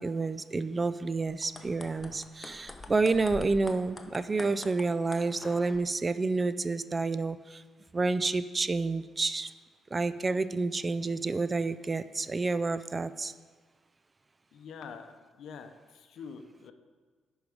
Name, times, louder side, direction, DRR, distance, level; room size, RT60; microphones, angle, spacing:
voice 1, 0.0-7.6 7.9-9.5 9.9-13.3, right 3 dB, 25° right, 13 dB, 0.3 m, -29 dB
sound 1, 1.4-5.8, left 3 dB, 25° left, 0.7 m, -46 dB
voice 2, 14.5-16.7, left 6 dB, 75° left, 7 dB, 0.7 m, -46 dB
10.5 x 4.7 x 5.2 m, 1.5 s
cardioid pair, 90°, 0 cm